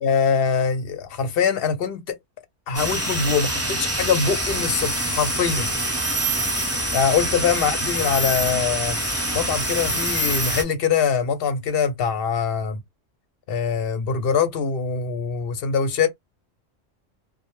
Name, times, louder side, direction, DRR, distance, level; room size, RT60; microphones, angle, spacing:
voice 1, 0.0-2.2 2.7-5.7 6.9-9.0 9.3-12.8 13.5-16.1, left 6 dB, 60° left, 0.7 m, -23 dB
sound 1, 2.7-10.6, right 1 dB, 15° right, 0.6 m, -25 dB
2.1 x 2.0 x 2.9 m
omnidirectional pair, 1.3 m